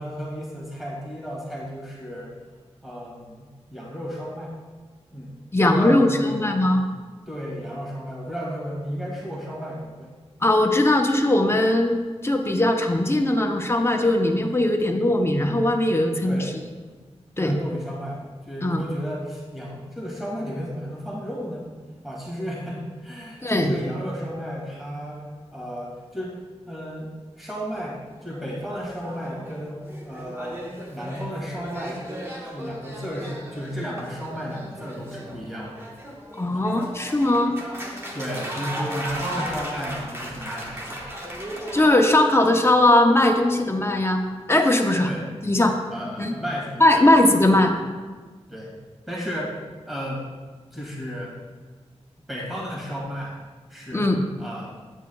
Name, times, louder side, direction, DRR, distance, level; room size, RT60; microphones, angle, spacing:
voice 1, 0.0-2.3 2.8-4.5 5.1-6.4 7.3-10.1 16.2-16.5 17.4-21.7 22.0-25.2 25.5-26.4 26.7-27.1 27.4-32.0 32.5-35.8 36.5-36.7 38.1-41.0 45.0-45.4 45.9-47.1 48.5-48.8 49.1-50.3 50.7-51.3 52.3-53.3 53.7-54.1 54.4-54.8, equal, ahead, -5 dB, 1.8 m, -33 dB
voice 2, 5.5-6.8 10.4-16.3 17.4-17.5 18.6-18.8 23.4-23.7 36.4-37.6 41.7-44.2 44.5-45.1 45.4-45.8 46.2-46.3 46.8-47.7 53.9-54.2, left 1 dB, 20° left, 3 dB, 0.7 m, -19 dB
sound 1, 28.1-41.9, right 1 dB, 20° right, 1.1 m, -36 dB
9.1 x 7.2 x 2.3 m, 1.4 s
wide cardioid pair, 90°, 11 cm